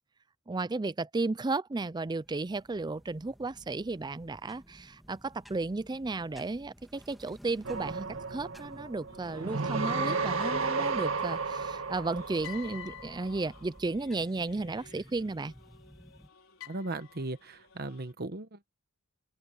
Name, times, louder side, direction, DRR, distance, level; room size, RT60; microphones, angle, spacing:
voice 1, 0.5-15.5, right 3 dB, 20° right, 0.5 m, -34 dB
sound 1, 1.9-16.3, equal, ahead, 2.3 m, -55 dB
sound 2, 7.6-13.3, right 4 dB, 70° right, 2.0 m, -33 dB
sound 3, 9.1-18.1, left 10 dB, 70° left, 4.7 m, -52 dB
voice 2, 16.7-18.7, right 2 dB, 50° right, 1.2 m, -37 dB
open air
head